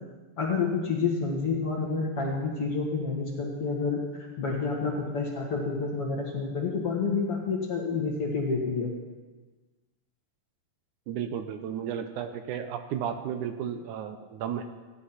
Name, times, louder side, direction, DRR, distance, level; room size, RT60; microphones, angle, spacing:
voice 1, 0.4-8.9, left 4 dB, 50° left, -2 dB, 2.2 m, -29 dB
voice 2, 11.1-14.6, right 8 dB, 75° right, 8 dB, 2.0 m, -33 dB
16.0 x 10.5 x 5.8 m, 1.3 s
omnidirectional pair, 4.1 m